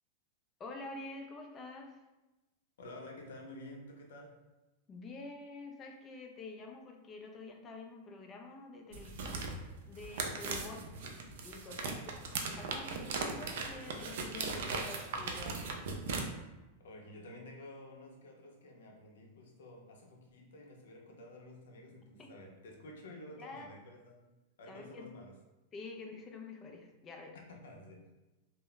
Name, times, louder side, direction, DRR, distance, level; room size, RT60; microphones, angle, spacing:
voice 1, 0.6-2.0 4.9-9.4 9.9-10.8 11.4-12.3 12.6-15.9 22.2-22.3 23.4-23.7 24.7-25.1 25.7-27.4, left 3 dB, 20° left, 2 dB, 0.3 m, -48 dB
voice 2, 2.8-4.4 10.1-10.4 16.8-24.3 24.6-25.4 27.5-28.1, left 1 dB, 85° left, 1 dB, 0.6 m, -51 dB
sound 1, 8.9-16.2, right 4 dB, 65° right, 0.4 m, -38 dB
2.1 x 2.0 x 3.7 m, 1.1 s
supercardioid pair, 165°, 0 cm